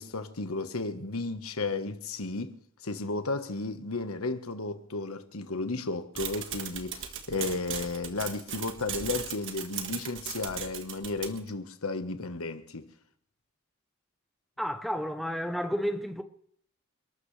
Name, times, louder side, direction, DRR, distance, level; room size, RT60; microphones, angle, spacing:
voice 1, 0.0-2.5 2.8-12.9, left 3 dB, 80° left, 1.4 m, -33 dB
sound 1, 6.2-11.5, right 8 dB, 60° right, 1.7 m, -37 dB
voice 2, 14.6-16.2, equal, ahead, 0.9 m, -31 dB
29.0 x 12.5 x 3.3 m
head